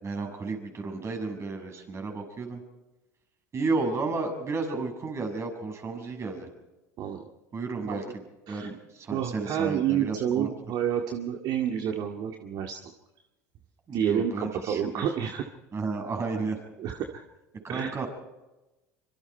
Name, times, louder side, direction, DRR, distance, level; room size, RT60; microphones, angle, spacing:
voice 1, 0.0-2.6 3.5-6.5 7.5-10.5 13.9-15.0 15.7-16.6 17.6-18.1, right 3 dB, 35° right, 4 dB, 6.8 m, -32 dB
voice 2, 7.0-7.3 7.9-8.0 8.5-8.7 9.1-12.9 13.9-15.4 16.8-17.2 17.7-18.0, right 9 dB, 55° right, 3 dB, 2.1 m, -29 dB
25.5 x 24.0 x 4.6 m, 1.1 s
hypercardioid pair, 80°, 9 cm